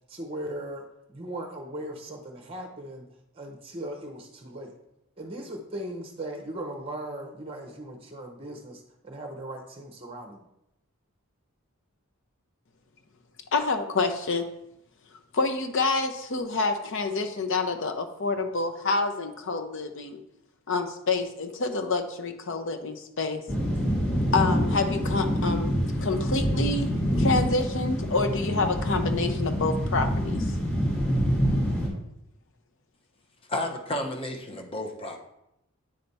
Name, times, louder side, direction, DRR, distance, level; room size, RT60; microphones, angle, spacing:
voice 1, 0.1-0.9 1.1-3.1 3.4-4.7 5.2-10.5, right 1 dB, 25° right, 2 dB, 0.7 m, -38 dB
voice 2, 13.5-14.5 15.3-20.2 20.7-23.4 24.3-26.9 27.2-30.5, left 3 dB, 60° left, 6 dB, 0.7 m, -27 dB
sound 1, 23.5-31.9, equal, 10° left, 1.7 m, -26 dB
voice 3, 33.5-35.2, left 1 dB, 25° left, 3 dB, 0.8 m, -32 dB
9.0 x 3.3 x 4.1 m, 0.83 s
head